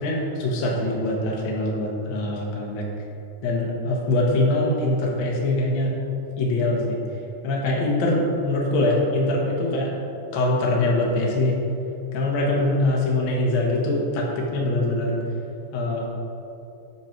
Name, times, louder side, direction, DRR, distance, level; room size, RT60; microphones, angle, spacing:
voice 1, 0.0-2.8 3.4-6.0 6.4-7.0 7.4-9.9 10.3-11.6 12.1-15.2 15.7-16.0, left 2 dB, 85° left, -2 dB, 1.0 m, -23 dB
10.5 x 5.8 x 4.6 m, 2.9 s
omnidirectional pair, 4.5 m